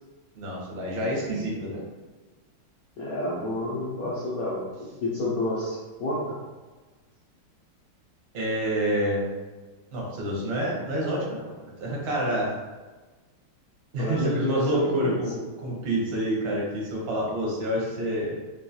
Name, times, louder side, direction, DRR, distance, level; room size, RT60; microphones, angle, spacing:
voice 1, 0.3-1.8 8.3-9.3 9.9-11.5 11.8-12.5 13.9-15.3 15.6-18.4, right 1 dB, 60° right, -3 dB, 0.6 m, -28 dB
voice 2, 3.0-6.3 14.0-15.2, left 1 dB, 70° left, -7 dB, 0.8 m, -29 dB
3.7 x 2.4 x 2.7 m, 1.3 s
omnidirectional pair, 2.2 m